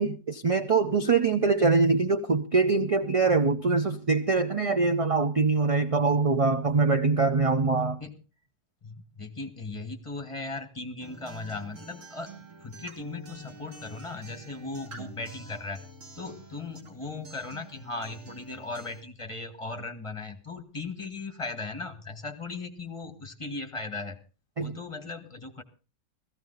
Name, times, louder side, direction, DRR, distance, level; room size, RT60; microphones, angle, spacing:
voice 1, 0.0-8.0 24.6-24.8, right 4 dB, 40° right, 0.5 m, -23 dB
voice 2, 8.8-12.3 12.6-15.8 16.2-24.2 24.6-25.6, left 3 dB, 20° left, 1.5 m, -37 dB
Acoustic guitar, 11.0-19.0, right 3 dB, 60° right, 2.9 m, -47 dB
15.5 x 15.0 x 4.0 m
omnidirectional pair, 1.6 m